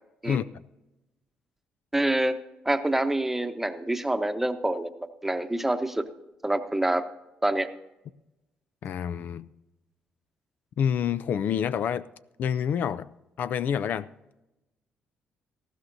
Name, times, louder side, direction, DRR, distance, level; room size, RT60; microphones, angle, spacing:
voice 1, 1.9-2.4 2.6-4.9 5.2-6.1 6.4-7.0 7.4-7.7, right 1 dB, 10° right, 0.9 m, -26 dB
voice 2, 8.8-9.5 10.8-12.1 12.4-13.1 13.4-14.1, left 8 dB, 60° left, 0.4 m, -27 dB
18.5 x 14.0 x 2.7 m
cardioid pair, 95°, 3 cm